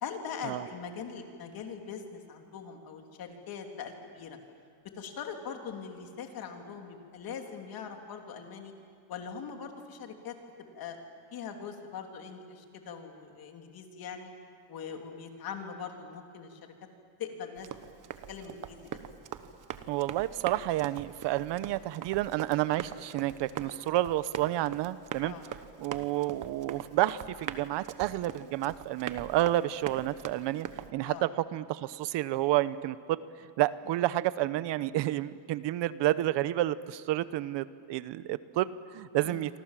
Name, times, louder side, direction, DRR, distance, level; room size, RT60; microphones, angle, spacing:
voice 1, 0.0-4.4 5.0-8.7 9.1-10.3 10.7-11.0 11.3-14.3 14.7-16.7 17.2-17.7 18.3-18.8 25.2-25.5 31.0-31.3 33.9-34.0 39.2-39.5, left 6 dB, 50° left, 3 dB, 3.2 m, -41 dB
Run, 17.6-30.9, right 9 dB, 40° right, 1.3 m, -42 dB
voice 2, 19.9-25.3 25.8-30.7 30.9-33.2 33.6-39.6, right 15 dB, 65° right, 15 dB, 0.9 m, -30 dB
28.0 x 25.0 x 7.5 m, 2.3 s
cardioid pair, 150°, 45 cm